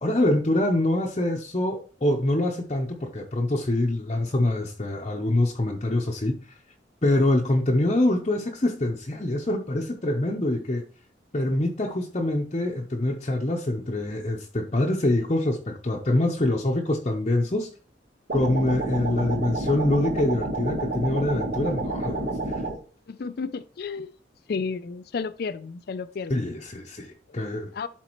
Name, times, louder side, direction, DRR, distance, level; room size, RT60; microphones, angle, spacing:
voice 1, 0.0-6.4 7.0-10.8 11.3-17.7 18.3-22.6 26.3-27.7, left 1 dB, 35° left, 0.7 m, -25 dB
sound 1, 18.3-22.8, right 2 dB, 50° right, 1.2 m, -29 dB
voice 2, 23.1-24.1 24.5-26.5 27.3-27.4 27.7-27.9, left 5 dB, 55° left, 0.4 m, -32 dB
11.5 x 4.1 x 3.0 m
head